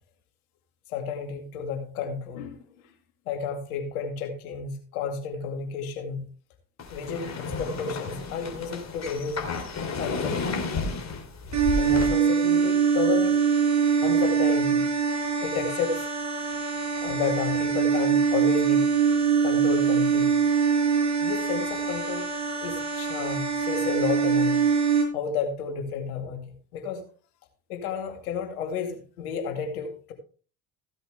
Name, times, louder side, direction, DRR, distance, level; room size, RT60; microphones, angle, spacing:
voice 1, 0.9-2.6 3.3-6.3 6.9-9.4 10.0-10.5 11.7-13.3 14.0-14.9 15.4-16.1 17.0-18.9 19.4-20.5 21.2-22.3 22.6-24.6 25.1-27.0 27.7-30.1, left 6 dB, 85° left, 4 dB, 2.4 m, -31 dB
sound 1, 6.8-12.1, left 4 dB, 40° left, 3.2 m, -32 dB
sound 2, 11.5-25.0, right 6 dB, 40° right, 6.3 m, -23 dB
15.5 x 7.9 x 3.3 m, 0.39 s
hypercardioid pair, 65°, 43 cm